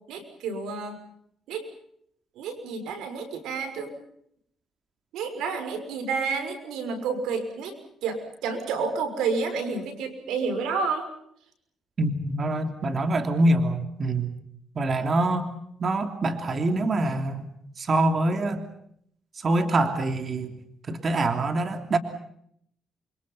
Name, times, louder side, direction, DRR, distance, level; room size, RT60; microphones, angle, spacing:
voice 1, 0.1-1.0 1.5-1.7 2.3-3.9 5.1-11.1, right 5 dB, 90° right, 7 dB, 6.2 m, -30 dB
voice 2, 12.0-14.4 14.7-15.5 15.8-17.5 17.8-18.6 19.3-20.6 20.9-22.0, right 2 dB, 40° right, 8 dB, 3.1 m, -25 dB
29.0 x 24.5 x 5.6 m, 0.69 s
cardioid pair, 90°, 0 cm